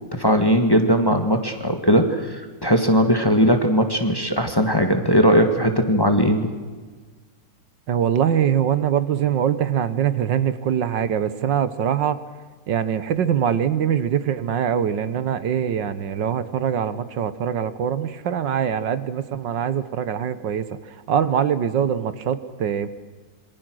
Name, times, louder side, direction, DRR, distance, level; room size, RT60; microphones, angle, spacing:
voice 1, 0.2-6.5, equal, 15° left, 5 dB, 1.7 m, -19 dB
voice 2, 7.9-12.2 12.7-20.8 21.1-22.9, right 8 dB, 75° right, 13 dB, 1.7 m, -23 dB
27.0 x 24.0 x 6.3 m, 1.4 s
omnidirectional pair, 2.0 m